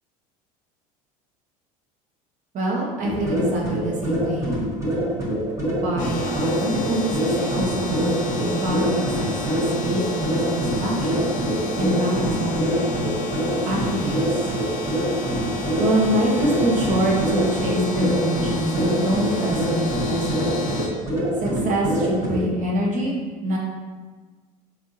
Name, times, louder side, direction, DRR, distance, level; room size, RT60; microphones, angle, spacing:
voice 1, 2.5-4.6 5.8-11.3 11.7-13.1 13.6-14.2 15.8-20.7 21.4-23.6, right 1 dB, 45° right, -2 dB, 0.9 m, -25 dB
sound 1, 3.0-22.5, right 1 dB, 15° right, 1.2 m, -25 dB
sound 2, 6.0-20.9, left 1 dB, 45° left, 0.7 m, -30 dB
3.5 x 2.5 x 2.7 m, 1.4 s
supercardioid pair, 90°, 19 cm